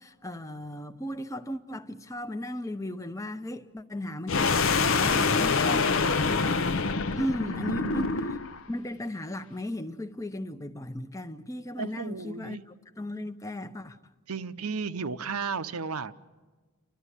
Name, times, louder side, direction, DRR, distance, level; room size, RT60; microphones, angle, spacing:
voice 1, 0.0-6.7 7.1-8.1 8.7-12.6 13.0-14.0, left 1 dB, 15° left, 0.8 m, -36 dB
sound 1, 4.3-8.6, left 4 dB, 60° left, 0.7 m, -25 dB
voice 2, 7.5-8.1 11.8-12.6 14.3-16.1, right 5 dB, 90° right, 0.8 m, -34 dB
30.0 x 12.5 x 9.9 m
head